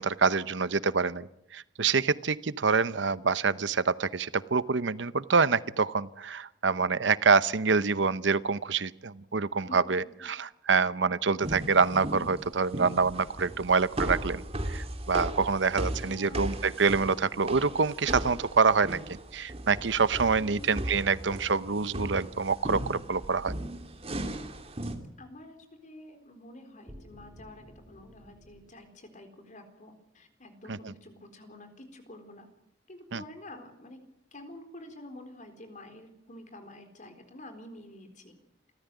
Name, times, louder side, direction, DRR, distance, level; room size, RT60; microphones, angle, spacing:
voice 1, 0.0-19.0 19.3-23.5 30.7-30.8 33.1-33.2, right 5 dB, 80° right, 16 dB, 0.8 m, -26 dB
voice 2, 9.6-9.9 16.0-16.5 20.4-20.9 25.2-32.5 32.9-34.0 34.3-38.3, left 1 dB, 45° left, 7 dB, 4.1 m, -48 dB
sound 1, 11.4-24.9, right 1 dB, 35° right, 2.8 m, -37 dB
sound 2, 26.9-28.7, equal, 10° right, 6.3 m, -54 dB
28.0 x 14.5 x 9.2 m, 0.82 s
head